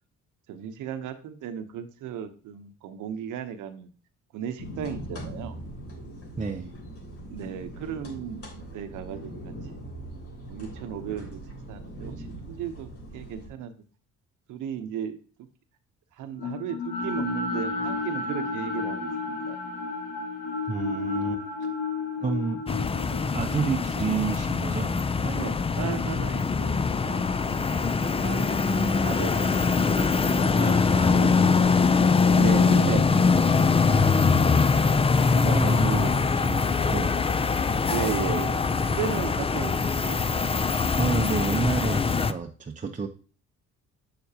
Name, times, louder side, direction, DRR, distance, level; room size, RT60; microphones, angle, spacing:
voice 1, 0.5-3.9 4.3-5.6 7.3-9.9 10.5-13.7 14.5-15.5 16.2-19.6 25.2-28.5 29.0-30.0 31.1-31.4 32.1-33.1 33.7-34.0 35.2-36.1 36.6-36.9 37.9-40.2, right 8 dB, 85° right, 9 dB, 0.9 m, -35 dB
sound 1, 4.6-13.5, right 1 dB, 50° left, 3.2 m, -41 dB
voice 2, 6.4-6.7 20.7-21.4 22.2-22.6 23.3-25.0 30.2-32.0 32.3-33.0 35.6-36.1 36.3-37.1 41.0-43.1, right 5 dB, 25° right, 3 dB, 0.7 m, -31 dB
sound 2, 16.4-26.6, left 4 dB, 90° left, 1.6 m, -33 dB
sound 3, 22.7-42.3, left 4 dB, 20° left, 0.5 m, -23 dB
7.7 x 6.8 x 2.8 m, 0.37 s
cardioid pair, 90°, 30 cm